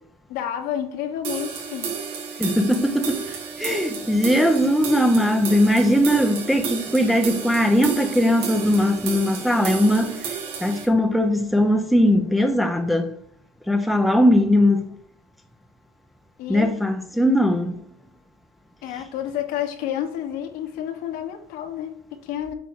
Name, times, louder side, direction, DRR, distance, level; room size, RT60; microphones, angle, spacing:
voice 1, 0.3-2.0 16.4-16.8 18.8-22.5, left 10 dB, 70° left, 1.3 m, -30 dB
sound 1, 1.2-10.8, right 6 dB, 65° right, 2.8 m, -32 dB
voice 2, 2.4-10.3 10.6-13.1 13.7-14.9 16.5-17.8, equal, ahead, 0.8 m, -20 dB
8.2 x 4.6 x 4.8 m
cardioid pair, 120°, 16 cm